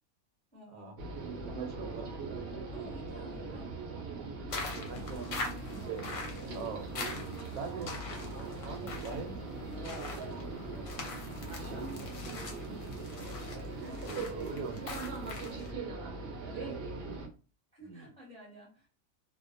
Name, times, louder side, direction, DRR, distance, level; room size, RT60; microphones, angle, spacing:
voice 1, 0.5-1.0 2.7-3.7 6.4-6.7 11.6-12.7 13.6-14.8 16.5-16.8 17.7-18.9, equal, 5° left, -3 dB, 0.7 m, -50 dB
sound 1, 1.0-17.3, right 3 dB, 60° right, 0.6 m, -40 dB
voice 2, 1.2-2.1 4.6-6.0 6.5-7.2 7.5-9.9 10.3-10.9 13.6-15.2 15.5-15.6 17.8-18.1, right 5 dB, 80° right, 5 dB, 1.1 m, -43 dB
sound 2, 4.5-15.7, left 3 dB, 65° left, 0.9 m, -44 dB
2.4 x 2.1 x 2.5 m, 0.35 s
omnidirectional pair, 1.5 m